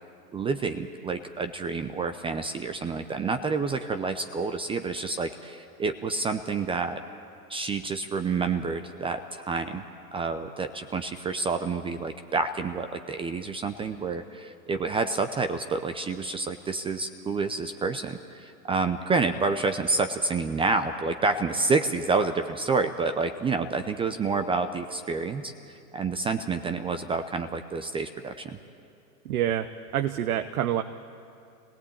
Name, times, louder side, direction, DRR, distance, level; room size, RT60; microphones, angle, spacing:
voice 1, 0.3-7.0 7.5-9.8 10.1-28.6, right 4 dB, 10° right, 8 dB, 0.6 m, -28 dB
voice 2, 29.3-30.8, right 11 dB, 65° right, 7 dB, 1.1 m, -27 dB
26.0 x 18.0 x 8.6 m, 2.6 s
hypercardioid pair, 115°, 47 cm